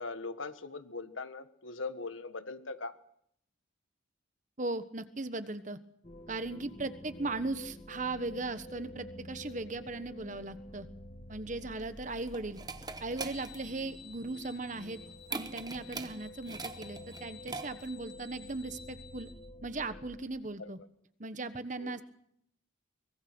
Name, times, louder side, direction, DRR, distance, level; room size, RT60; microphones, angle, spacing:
voice 1, 0.0-3.0 10.3-10.4 20.6-20.7 21.8-22.0, left 3 dB, 80° left, 11 dB, 1.5 m, -41 dB
voice 2, 4.6-5.8 6.3-10.9 11.3-12.6 13.0-15.0 15.3-19.3 19.6-20.8 21.2-22.0, right 2 dB, 40° right, 11 dB, 1.3 m, -38 dB
sound 1, 6.0-20.2, left 1 dB, 30° left, 2.0 m, -50 dB
sound 2, 11.6-18.0, right 4 dB, 20° right, 0.9 m, -43 dB
sound 3, 13.3-19.3, left 6 dB, 55° left, 4.6 m, -54 dB
24.0 x 21.0 x 6.2 m, 0.71 s
head